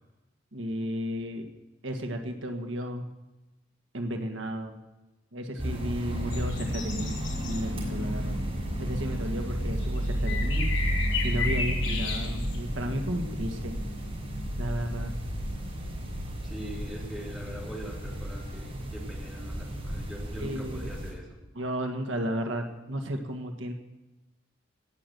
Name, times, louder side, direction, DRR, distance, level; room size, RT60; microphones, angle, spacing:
voice 1, 0.5-1.5 1.8-3.1 3.9-4.8 5.3-8.4 8.8-10.7 11.2-13.8 14.6-15.1 20.4-21.0 21.5-23.7, equal, 75° right, 5 dB, 1.5 m, -33 dB
sound 1, 5.6-21.1, equal, 30° right, 6.3 m, -32 dB
sound 2, 6.3-7.6 9.8-12.6, left 4 dB, 70° left, 2.6 m, -34 dB
voice 2, 16.4-21.4, right 1 dB, ahead, -4 dB, 3.2 m, -42 dB
18.0 x 6.8 x 7.8 m, 1.0 s
head